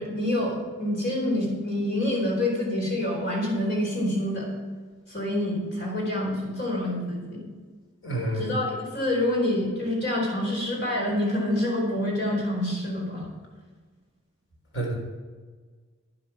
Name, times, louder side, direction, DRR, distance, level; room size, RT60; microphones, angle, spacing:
voice 1, 0.0-4.5 5.1-7.4 8.3-13.3, left 1 dB, 50° left, -2 dB, 4.4 m, -27 dB
voice 2, 8.0-8.5 14.7-15.0, right 1 dB, 65° left, -1 dB, 4.0 m, -28 dB
11.5 x 10.0 x 5.8 m, 1.5 s
head